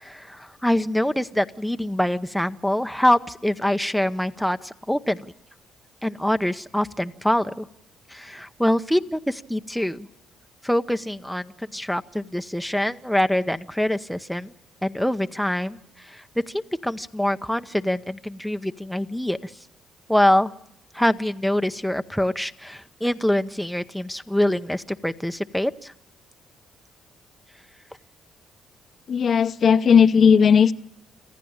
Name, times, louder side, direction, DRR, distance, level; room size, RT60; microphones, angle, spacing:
voice 1, 0.0-5.3 6.0-7.6 8.1-10.1 10.6-14.5 14.8-15.8 16.1-16.2 16.5-19.5 20.1-20.5 20.9-25.9, left 1 dB, ahead, 8 dB, 0.8 m, -24 dB
voice 2, 29.1-30.7, left 7 dB, 50° left, 11 dB, 0.8 m, -16 dB
27.0 x 14.5 x 8.7 m, 0.80 s
cardioid pair, 90°, 0 cm